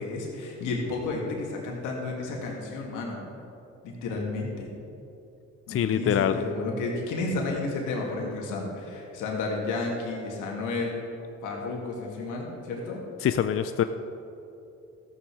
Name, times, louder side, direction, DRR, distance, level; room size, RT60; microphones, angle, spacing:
voice 1, 0.0-3.2 3.8-4.7 5.7-11.0 11.4-13.0, left 3 dB, 90° left, -1 dB, 2.4 m, -32 dB
voice 2, 5.7-6.4 13.2-13.8, left 9 dB, 45° left, 10 dB, 0.5 m, -24 dB
13.5 x 9.0 x 4.9 m, 2.8 s
cardioid pair, 90°, 30 cm